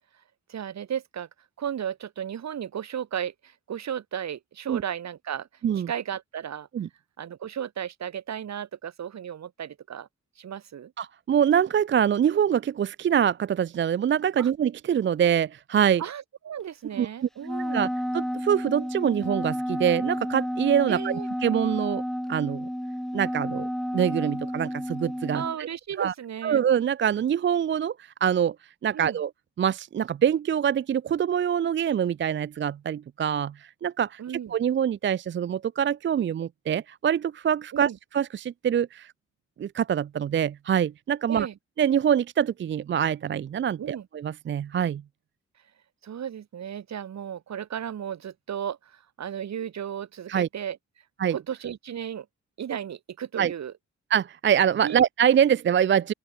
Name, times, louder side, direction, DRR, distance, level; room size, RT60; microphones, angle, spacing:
voice 1, 0.5-1.3 1.6-5.5 5.7-6.7 7.2-10.1 10.4-10.9 14.4-14.5 16.0-17.9 20.9-21.3 25.3-26.6 28.9-29.2 34.2-34.5 37.7-38.0 41.3-41.5 43.8-44.1 46.0-50.8 51.3-52.3 52.6-53.7 54.8-55.0, right 9 dB, 70° right, 1.6 m, -34 dB
voice 2, 11.0-16.0 17.0-17.1 17.7-17.9 18.1-21.1 21.4-22.0 22.3-22.7 23.1-25.7 26.0-26.1 26.4-28.6 28.8-29.3 29.6-34.2 34.5-39.1 39.6-41.5 41.8-45.0 50.3-50.5 51.2-51.3 53.4-53.5 54.1-56.1, right 9 dB, 40° right, 0.4 m, -24 dB
Wind instrument woodwind instrument, 17.4-25.6, equal, ahead, 2.1 m, -31 dB
open air
cardioid pair, 80°, 29 cm